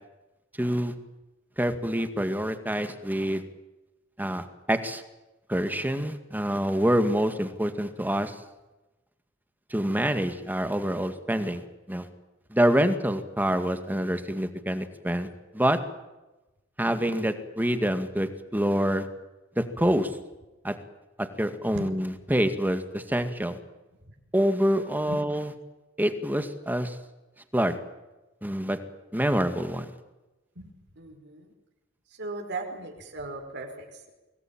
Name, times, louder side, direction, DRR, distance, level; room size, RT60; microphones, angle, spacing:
voice 1, 0.6-0.9 1.6-3.4 4.2-5.0 5.5-8.4 9.7-11.6 11.9-12.1 12.5-15.3 15.5-15.8 16.8-19.1 19.6-20.1 20.6-20.7 21.2-23.6 24.3-25.5 26.0-27.0 27.5-27.8 28.4-28.8 29.1-29.9, equal, 10° right, 8 dB, 2.1 m, -26 dB
voice 2, 30.5-31.5 32.1-34.1, right 2 dB, 60° right, 3 dB, 4.9 m, -38 dB
25.5 x 19.5 x 8.9 m, 1.1 s
head